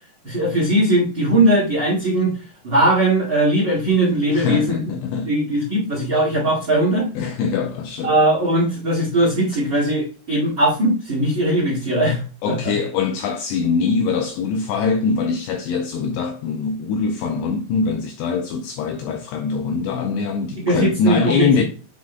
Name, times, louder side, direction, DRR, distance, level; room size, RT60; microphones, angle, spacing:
voice 1, 0.2-2.3 2.6-4.8 5.2-7.1 8.0-12.7 20.6-21.6, right 1 dB, 40° right, 1.7 m, -19 dB
voice 2, 4.3-5.3 7.2-8.1 12.4-21.6, left 5 dB, 85° left, 2.4 m, -23 dB
9.4 x 5.1 x 2.2 m
omnidirectional pair, 5.5 m